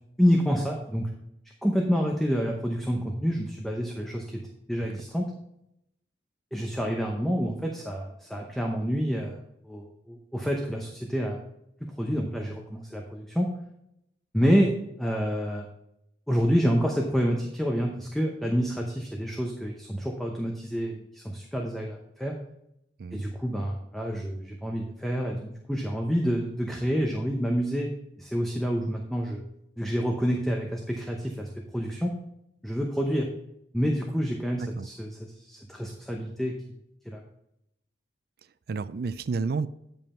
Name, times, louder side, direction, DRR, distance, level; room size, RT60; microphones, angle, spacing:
voice 1, 0.2-1.1 1.6-4.4 4.7-5.3 6.5-11.4 11.8-13.5 14.3-14.7 15.0-15.7 16.3-22.3 23.1-27.9 28.2-29.4 29.8-31.5 31.7-32.1 32.6-33.3 33.7-36.5 37.1-37.2, equal, ahead, 0 dB, 0.8 m, -28 dB
voice 2, 38.7-39.7, right 4 dB, 60° right, 15 dB, 0.4 m, -31 dB
9.2 x 5.4 x 4.3 m, 0.81 s
head